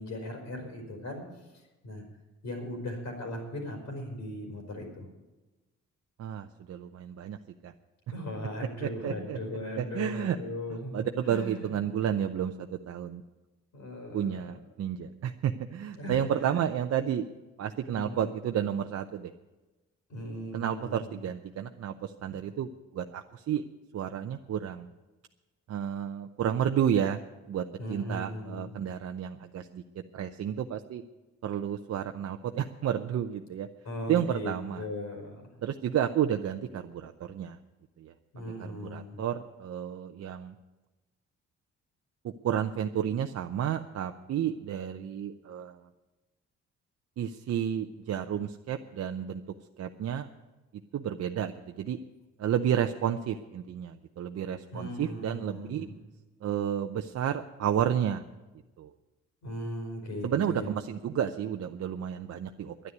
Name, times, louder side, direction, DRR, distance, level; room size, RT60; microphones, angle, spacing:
voice 1, 0.0-2.0 2.4-5.1 8.1-11.7 13.7-14.5 16.0-16.6 17.9-18.3 20.1-21.2 27.8-28.7 33.8-35.4 38.3-39.2 54.7-55.9 59.4-60.7, left 1 dB, 70° left, 1 dB, 4.5 m, -38 dB
voice 2, 6.2-7.4 7.6-7.7 8.8-9.4 9.8-10.4 10.9-13.2 14.1-17.3 17.6-19.3 20.5-23.6 23.9-24.9 25.7-27.2 27.5-29.8 30.1-31.0 31.4-33.7 34.1-34.9 35.6-37.6 38.0-38.1 38.6-40.5 42.2-45.8 47.2-49.4 49.8-50.3 50.9-52.0 52.4-55.9 56.4-58.2 58.8-58.9 60.2-62.7, right 9 dB, 55° right, 6 dB, 0.7 m, -31 dB
11.0 x 9.7 x 9.3 m, 1.1 s
cardioid pair, 90°, 30 cm